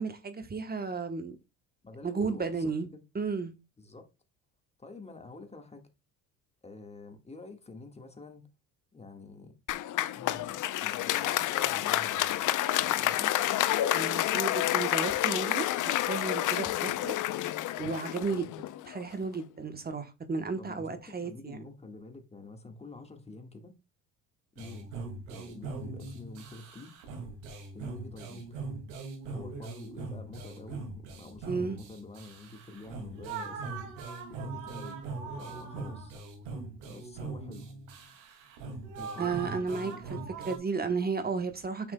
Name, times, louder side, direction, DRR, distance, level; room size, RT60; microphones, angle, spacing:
voice 1, 0.0-1.4 2.0-2.9 3.1-3.5 13.9-15.7 16.0-17.1 17.8-18.5 18.9-21.6 31.5-31.8 39.2-40.2 40.4-41.9, right 4 dB, 25° right, 1.0 m, -33 dB
voice 2, 1.8-3.0 3.8-4.1 4.8-5.9 6.6-8.5 8.9-9.5 10.1-12.5 12.8-13.4 18.3-18.5 20.6-23.8 24.5-25.0 25.3-26.9 27.7-28.5 29.3-35.0 35.3-36.1 36.8-37.7 39.0-40.1, left 3 dB, 15° left, 1.6 m, -48 dB
Applause, 9.7-19.0, left 14 dB, 55° left, 0.6 m, -29 dB
sound 1, 24.6-40.6, right 4 dB, 90° right, 2.3 m, -41 dB
8.6 x 6.1 x 2.2 m
supercardioid pair, 80°, 37 cm